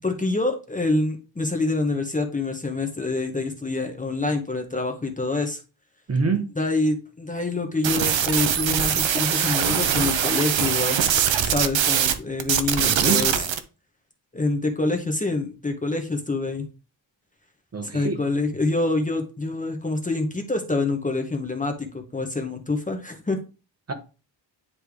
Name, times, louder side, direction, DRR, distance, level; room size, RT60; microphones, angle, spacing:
voice 1, 0.0-5.6 6.6-11.0 11.4-13.3 14.3-16.7 17.8-23.4, left 2 dB, 15° left, 0.9 m, -26 dB
voice 2, 6.1-6.5 12.8-13.5 17.7-18.2 23.9-24.0, right 4 dB, 30° right, 1.0 m, -26 dB
sound 1, 7.8-12.1 12.4-13.6, right 8 dB, 75° right, 0.8 m, -22 dB
9.8 x 3.3 x 3.4 m
wide cardioid pair, 145°, 46 cm